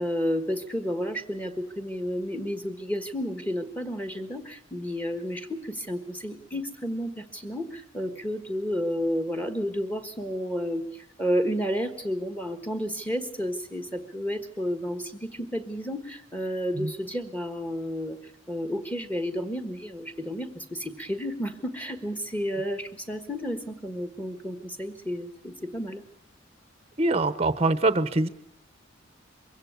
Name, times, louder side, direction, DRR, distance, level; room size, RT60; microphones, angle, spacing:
voice 1, 0.0-26.0, equal, 10° left, 8 dB, 1.4 m, -31 dB
voice 2, 27.0-28.3, right 2 dB, 30° right, 13 dB, 0.8 m, -23 dB
22.5 x 16.5 x 8.3 m, 0.81 s
head